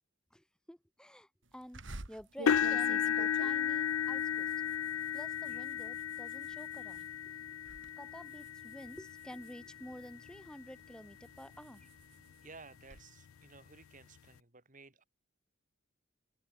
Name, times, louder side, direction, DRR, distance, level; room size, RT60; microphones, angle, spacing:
voice 1, 0.3-1.3 1.5-1.8 2.1-4.7 5.1-7.1 8.0-11.9, equal, 5° left, 2.0 m, -50 dB
sound 1, 1.7-7.1 7.5-7.9 8.3-10.3 10.8-13.0, right 2 dB, 60° right, 2.7 m, -49 dB
sound 2, 2.5-10.5 11.1-11.4 11.8-11.9 13.3-13.4, left 8 dB, 80° left, 0.4 m, -34 dB
voice 2, 12.4-15.0, right 3 dB, 40° right, 2.9 m, -55 dB
head